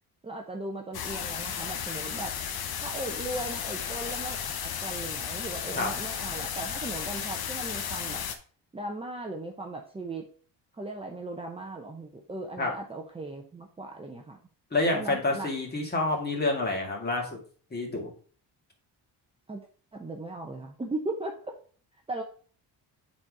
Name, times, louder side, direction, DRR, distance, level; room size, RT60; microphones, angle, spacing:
voice 1, 0.2-2.3 2.8-8.2 8.7-10.3 10.8-14.4 14.9-15.5 19.5-19.7 19.9-21.6 22.1-22.2, right 2 dB, 15° right, 2 dB, 0.7 m, -37 dB
sound 1, 0.9-8.4, left 8 dB, 65° left, 1.0 m, -34 dB
voice 2, 14.7-17.4 17.7-18.1, left 2 dB, 25° left, 1 dB, 2.1 m, -28 dB
7.3 x 4.3 x 4.7 m, 0.42 s
cardioid pair, 130°, 40 cm